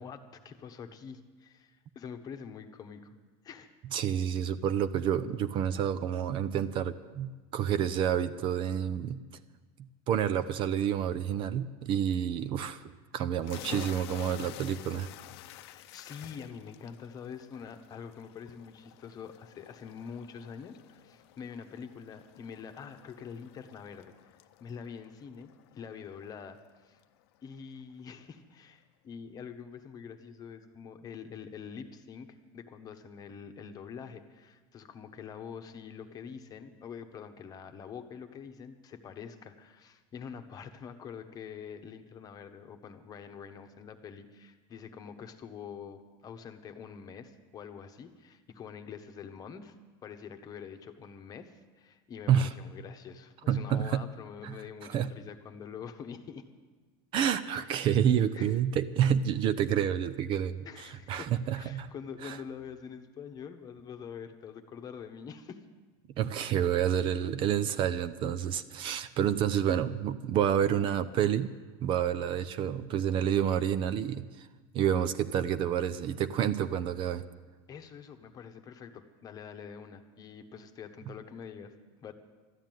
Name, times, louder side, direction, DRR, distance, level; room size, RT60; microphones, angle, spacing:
voice 1, 0.0-3.2 3.4-3.7 15.5-24.1 24.6-27.0 27.4-49.8 50.0-56.4 57.8-57.9 58.3-58.6 60.6-65.6 77.7-81.7 82.0-82.1, left 7 dB, 30° left, 7 dB, 1.1 m, -45 dB
voice 2, 3.9-9.2 10.1-15.1 52.3-52.5 53.5-54.1 54.4-54.6 54.9-55.1 57.1-61.9 62.2-62.4 66.2-71.5 71.8-74.5 74.7-77.2, right 9 dB, 40° right, 13 dB, 0.6 m, -29 dB
sound 1, 13.4-26.8, left 15 dB, 75° left, 0.7 m, -50 dB
13.0 x 11.5 x 9.2 m, 1.3 s
supercardioid pair, 150°, 13 cm